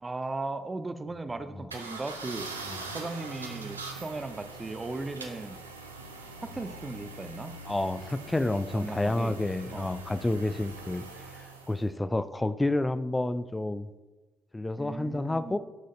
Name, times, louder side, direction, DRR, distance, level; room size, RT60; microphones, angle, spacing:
voice 1, 0.0-2.7 2.9-5.6 6.4-7.5 8.7-9.4 9.7-9.9 14.8-15.6, right 2 dB, 25° right, 10 dB, 0.6 m, -37 dB
sound 1, 1.7-11.8, right 3 dB, 85° right, 0.6 m, -42 dB
voice 2, 7.7-11.0 11.3-13.9 14.5-15.6, left 2 dB, 15° left, 14 dB, 0.4 m, -29 dB
12.0 x 6.3 x 2.7 m, 1.2 s
figure-of-eight pair, 45°, 0 cm